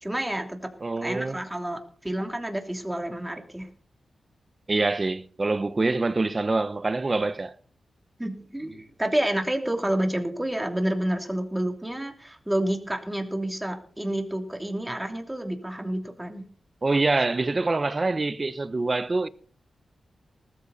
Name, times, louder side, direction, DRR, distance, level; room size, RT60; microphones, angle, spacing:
voice 1, 0.0-0.7 1.0-3.7 8.2-16.5, right 1 dB, 10° right, 3.0 m, -29 dB
voice 2, 0.8-1.4 4.7-7.5 16.8-19.3, right 3 dB, 25° right, 1.0 m, -25 dB
19.5 x 13.5 x 4.2 m
wide cardioid pair, 155°, 0 cm